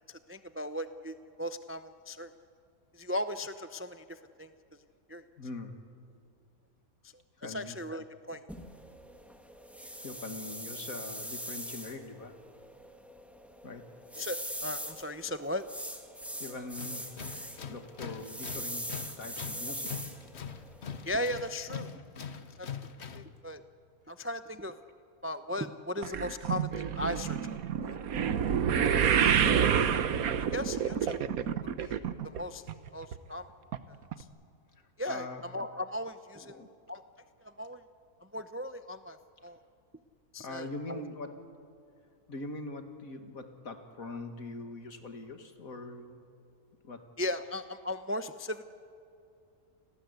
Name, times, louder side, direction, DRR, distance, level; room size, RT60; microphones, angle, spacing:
voice 1, 0.1-2.3 2.9-4.5 5.1-5.2 7.4-8.4 14.2-15.6 21.1-21.9 22.6-22.7 23.1-23.6 24.1-24.8 25.2-28.0 28.7-29.2 30.5-31.2 31.8-32.0 32.2-32.6 32.9-33.5 34.2-34.3 35.0-36.5 36.9-37.0 37.4-37.8 38.3-39.2 39.4-39.6 40.3-41.0 47.2-48.6, left 1 dB, 15° right, 10 dB, 0.4 m, -37 dB
voice 2, 5.4-5.9 7.4-7.8 10.0-12.4 13.6-13.9 16.4-17.1 17.7-20.0 28.8-29.1 31.9-32.1 34.8-35.4 36.5-36.7 40.4-41.5 42.3-46.2 46.8-47.1, left 2 dB, 70° left, 6 dB, 2.5 m, -42 dB
sound 1, 8.5-21.5, equal, ahead, 2.2 m, -42 dB
Tools, 16.8-23.4, left 6 dB, 50° left, 1.3 m, -43 dB
sound 2, 26.0-32.4 32.7-33.2 33.7-33.8 34.1-34.2, right 8 dB, 75° right, 1.4 m, -28 dB
30.0 x 21.0 x 8.2 m, 2.6 s
omnidirectional pair, 1.5 m